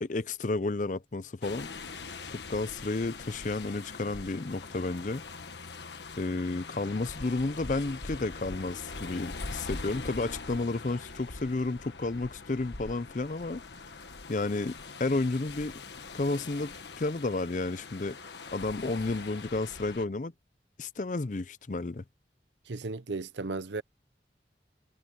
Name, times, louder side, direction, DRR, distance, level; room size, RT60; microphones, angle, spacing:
voice 1, 0.0-1.7 2.3-5.2 6.2-13.6 14.3-15.7 16.1-20.3 20.8-22.0, left 3 dB, 45° left, 0.6 m, -32 dB
sound 1, 1.4-20.1, left 3 dB, 75° left, 1.4 m, -43 dB
voice 2, 22.7-23.8, right 3 dB, 80° right, 0.8 m, -35 dB
head